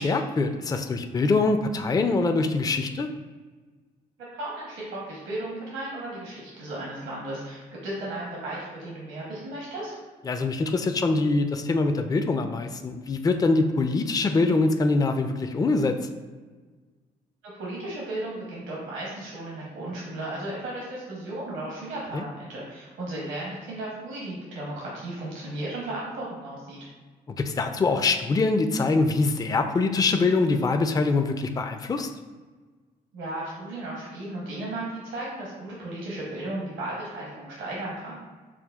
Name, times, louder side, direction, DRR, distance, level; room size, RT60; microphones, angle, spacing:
voice 1, 0.0-3.1 10.3-16.0 22.1-22.2 27.4-32.1, left 3 dB, 20° left, 6 dB, 0.4 m, -24 dB
voice 2, 4.3-10.0 17.6-26.8 33.1-38.2, right 1 dB, 80° right, -5 dB, 1.1 m, -35 dB
5.8 x 2.2 x 2.3 m, 1.4 s
hypercardioid pair, 45°, 20 cm